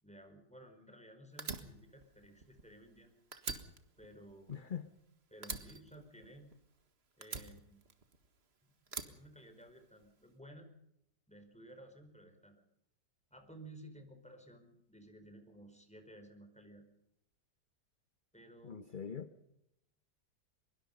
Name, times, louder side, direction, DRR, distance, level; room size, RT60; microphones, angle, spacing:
voice 1, 0.0-3.1 4.0-4.6 5.3-6.5 7.2-7.8 8.6-10.7 11.3-12.6 13.3-16.8 18.3-18.8, right 1 dB, 5° left, 5 dB, 4.7 m, -56 dB
Fire, 1.4-3.0 3.3-5.0 5.4-6.8 7.2-8.4 8.9-10.0, right 4 dB, 40° right, 1.9 m, -45 dB
voice 2, 4.5-4.9 18.6-19.5, left 7 dB, 35° left, 10 dB, 1.2 m, -43 dB
23.5 x 22.5 x 5.4 m, 0.78 s
omnidirectional pair, 1.8 m